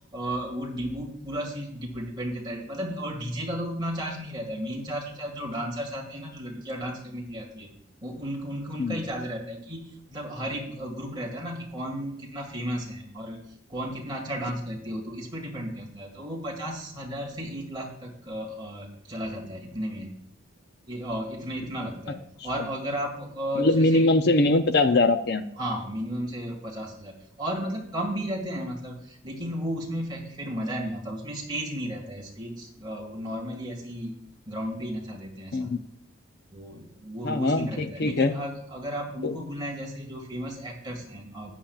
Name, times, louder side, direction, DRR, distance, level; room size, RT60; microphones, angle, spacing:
voice 1, 0.1-7.7 8.0-13.4 13.7-20.2 20.9-22.2 22.4-24.1 25.6-34.2 34.5-35.7 36.5-41.5, equal, 20° right, -1 dB, 2.0 m, -34 dB
voice 2, 23.6-25.4 35.5-35.8 37.2-38.3 39.2-39.3, left 2 dB, 50° left, 9 dB, 0.6 m, -22 dB
14.5 x 8.8 x 2.4 m, 0.72 s
head